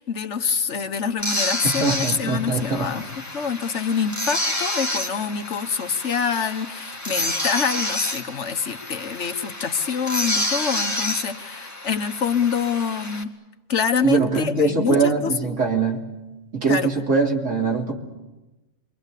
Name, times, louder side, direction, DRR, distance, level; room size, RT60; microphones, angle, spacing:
voice 1, 0.0-3.0 3.3-13.3 13.7-15.0 15.2-15.3 16.7-16.9, left 6 dB, 70° left, 7 dB, 1.5 m, -26 dB
sound 1, 1.2-13.2, left 1 dB, 15° left, 1.9 m, -29 dB
voice 2, 1.8-3.1 14.0-16.0 16.5-17.9, right 4 dB, 80° right, 0 dB, 3.6 m, -22 dB
28.5 x 23.5 x 8.3 m, 1.1 s
omnidirectional pair, 1.3 m